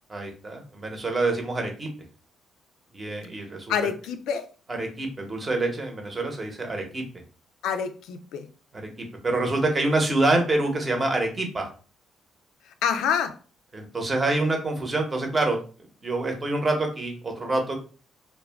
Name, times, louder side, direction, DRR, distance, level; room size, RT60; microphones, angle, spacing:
voice 1, 0.1-1.9 2.9-3.7 4.7-7.0 8.7-8.9 9.2-11.7 13.7-15.6 16.0-17.7, right 2 dB, 30° right, 2 dB, 0.8 m, -26 dB
voice 2, 3.7-4.4 7.6-8.5 12.7-13.3, left 7 dB, 85° left, 8 dB, 0.3 m, -27 dB
2.3 x 2.1 x 3.4 m, 0.38 s
cardioid pair, 90°, 0 cm